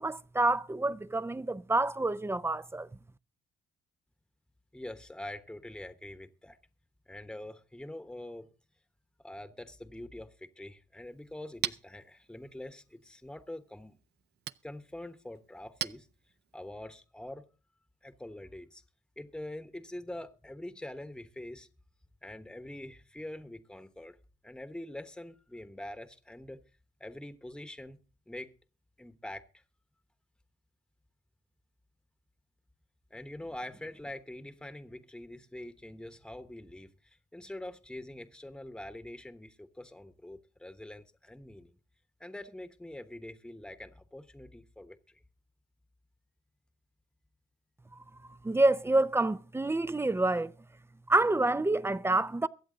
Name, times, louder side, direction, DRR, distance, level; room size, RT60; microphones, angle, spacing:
voice 1, 0.0-2.9 47.9-48.0 48.3-50.5 51.1-52.5, right 2 dB, 10° right, 0.6 m, -28 dB
voice 2, 4.7-6.6 7.1-8.5 9.2-14.0 14.6-16.1 16.5-17.4 18.0-18.8 19.2-21.7 22.2-24.2 24.4-26.6 27.0-28.0 28.3-28.5 29.0-29.6 33.1-41.7 42.2-45.2, left 1 dB, 5° left, 1.2 m, -44 dB
Chink clink, 11.0-16.7, right 11 dB, 55° right, 0.5 m, -43 dB
23.0 x 7.9 x 3.9 m
cardioid pair, 90°, 20 cm